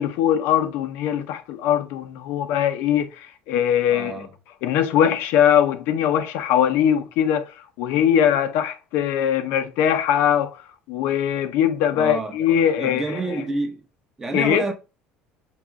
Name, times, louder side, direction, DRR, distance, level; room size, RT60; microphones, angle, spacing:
voice 1, 0.0-4.2 4.6-7.5 7.8-10.6 10.9-13.0 14.3-14.6, left 9 dB, 60° left, 0.5 m, -21 dB
voice 2, 3.9-4.3 11.9-12.4 12.8-13.9 14.2-14.7, right 2 dB, 15° right, 0.6 m, -28 dB
4.7 x 2.9 x 3.5 m
cardioid pair, 165°, 4 cm